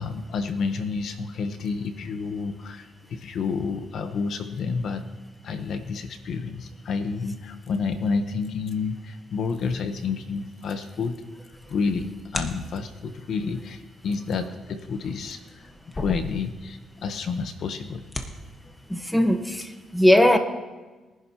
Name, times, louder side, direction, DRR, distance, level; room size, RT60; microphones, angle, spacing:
voice 1, 0.0-5.1 5.4-11.2 11.7-15.6 15.9-18.0, left 5 dB, 65° left, 8 dB, 1.0 m, -29 dB
sound 1, 11.4-13.0 14.4-16.9 17.2-17.3 17.8-18.3, left 2 dB, 25° left, 1.3 m, -36 dB
voice 2, 18.9-20.4, left 1 dB, 5° left, 7 dB, 1.2 m, -19 dB
23.0 x 11.0 x 2.9 m, 1.2 s
cardioid pair, 90°, 0 cm